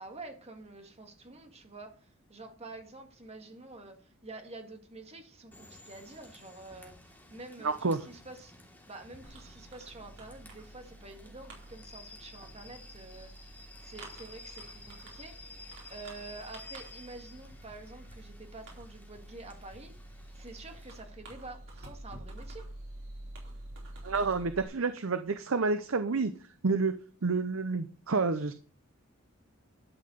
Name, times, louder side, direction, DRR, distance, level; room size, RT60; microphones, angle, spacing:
voice 1, 0.0-8.5 8.9-15.4 15.9-19.9 20.3-22.7, right 2 dB, 30° right, 2.0 m, -48 dB
Rain / Train, 5.5-21.0, left 2 dB, 10° left, 3.0 m, -53 dB
voice 2, 7.6-8.0 24.0-26.3 26.6-28.5, right 4 dB, 80° right, 0.7 m, -29 dB
Fireworks, 9.2-24.7, right 1 dB, 65° right, 4.6 m, -48 dB
12.0 x 5.8 x 6.5 m
head